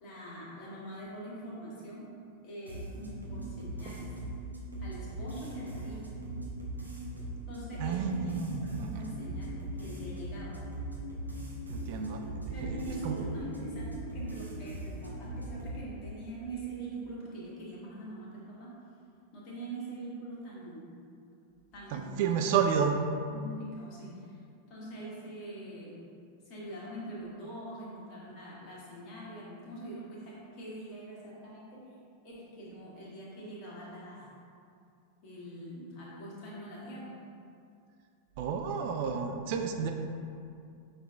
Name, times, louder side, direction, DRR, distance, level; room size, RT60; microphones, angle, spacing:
voice 1, 0.0-2.1 2.4-4.1 4.8-6.1 7.5-10.6 12.4-18.8 19.3-20.9 21.7-22.8 23.3-24.4 24.7-26.0 26.4-31.9 32.2-34.3 35.2-37.1, right 1 dB, 40° left, -6 dB, 1.4 m, -43 dB
sound 1, 2.7-15.8, right 1 dB, 85° right, 0.7 m, -40 dB
voice 2, 7.8-9.0 11.7-12.2 12.7-12.8 13.0-13.2 21.9-23.0 38.4-39.9, right 7 dB, 45° right, 4 dB, 0.3 m, -30 dB
5.9 x 2.6 x 3.5 m, 2.4 s
figure-of-eight pair, 90°, 0 cm